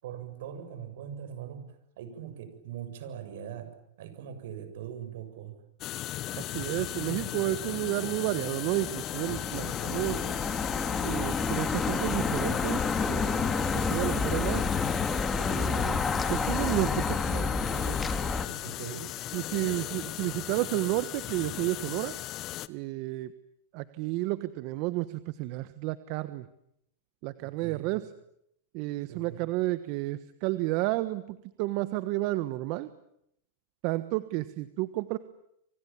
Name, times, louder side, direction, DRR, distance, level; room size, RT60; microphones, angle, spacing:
voice 1, 0.0-3.7 4.0-5.6 18.6-19.1 27.4-28.0 29.1-29.5, right 9 dB, 70° right, 10 dB, 7.4 m, -41 dB
sound 1, 5.8-22.7, left 14 dB, 35° left, 1.3 m, -36 dB
voice 2, 6.3-10.2 11.0-14.7 15.4-16.0 16.3-18.0 19.3-22.1 22.7-23.3 23.7-26.5 27.2-28.0 28.7-32.9 33.8-35.2, right 18 dB, 50° right, 13 dB, 1.3 m, -31 dB
sound 2, 8.7-18.5, left 4 dB, 15° left, 2.4 m, -30 dB
29.5 x 25.5 x 7.3 m, 0.77 s
hypercardioid pair, 130°, 0 cm